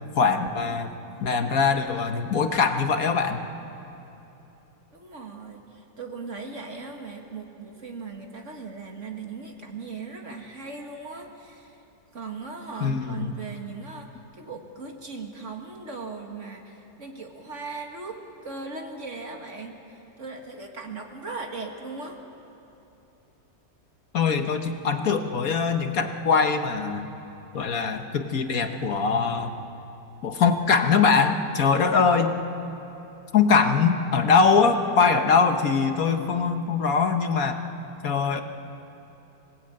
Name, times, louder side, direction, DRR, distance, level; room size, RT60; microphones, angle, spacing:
voice 1, 0.1-0.9 1.2-3.4 12.8-13.3 24.1-27.1 27.5-29.5 30.2-32.4 33.3-37.6 38.0-38.4, left 5 dB, 50° left, 6 dB, 1.5 m, -22 dB
voice 2, 4.9-11.8 12.1-22.2, right 4 dB, 40° right, 3 dB, 2.0 m, -38 dB
26.0 x 18.0 x 8.8 m, 3.0 s
omnidirectional pair, 2.0 m